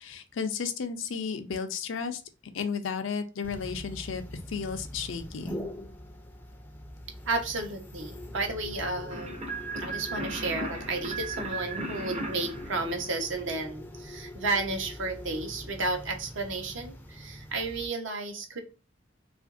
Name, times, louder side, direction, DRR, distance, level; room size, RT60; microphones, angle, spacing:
voice 1, 0.0-2.2 2.5-5.5, left 6 dB, 70° left, 8 dB, 0.5 m, -33 dB
sound 1, 3.4-17.9, left 1 dB, 10° left, 0.4 m, -43 dB
voice 2, 7.3-18.6, right 3 dB, 70° right, 4 dB, 0.8 m, -32 dB
sound 2, 9.1-13.6, right 3 dB, 30° right, 0.6 m, -36 dB
2.9 x 2.5 x 2.4 m, 0.32 s
head